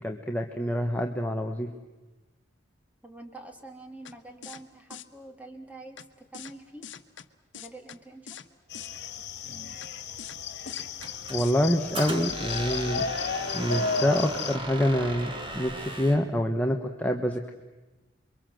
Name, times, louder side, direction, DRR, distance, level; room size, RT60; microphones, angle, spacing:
voice 1, 0.0-1.7 11.3-13.0 13.5-17.5, equal, 10° left, 3 dB, 1.2 m, -26 dB
voice 2, 3.0-6.9 7.5-8.4, right 2 dB, 10° right, 3 dB, 3.0 m, -46 dB
sound 1, 4.1-4.2 4.4-4.6 4.9-5.0 6.0-6.1 6.3-6.5 6.8-7.3 7.5-8.0 8.3-8.5 8.7-8.9 9.8-9.9 10.2-10.4 10.7-11.1 11.4-11.5, left 8 dB, 80° left, 1.2 m, -43 dB
sound 2, 8.7-14.6, left 5 dB, 60° left, 2.1 m, -33 dB
Squeak, 11.0-16.3, right 2 dB, 30° right, 2.6 m, -37 dB
28.5 x 23.5 x 7.7 m, 1.1 s
head